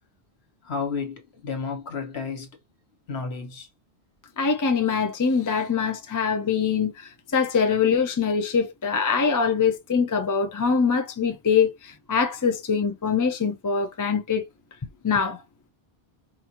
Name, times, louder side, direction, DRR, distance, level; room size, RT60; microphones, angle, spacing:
voice 1, 0.6-2.5 3.1-3.7, left 5 dB, 75° left, 1.3 m, -32 dB
voice 2, 4.4-14.4 15.0-15.4, left 6 dB, 35° left, 0.3 m, -23 dB
4.8 x 2.5 x 2.9 m
omnidirectional pair, 1.1 m